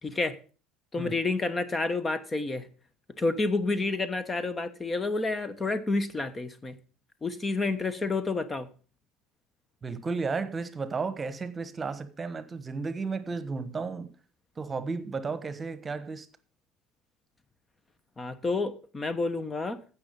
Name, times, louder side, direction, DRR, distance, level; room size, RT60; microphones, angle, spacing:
voice 1, 0.0-0.4 0.9-2.7 3.2-6.8 7.2-8.7 18.2-19.8, left 3 dB, 25° left, 1.1 m, -29 dB
voice 2, 9.8-14.1 14.6-16.3, right 4 dB, 25° right, 1.2 m, -33 dB
15.5 x 5.9 x 5.4 m
hypercardioid pair, 65°, 0 cm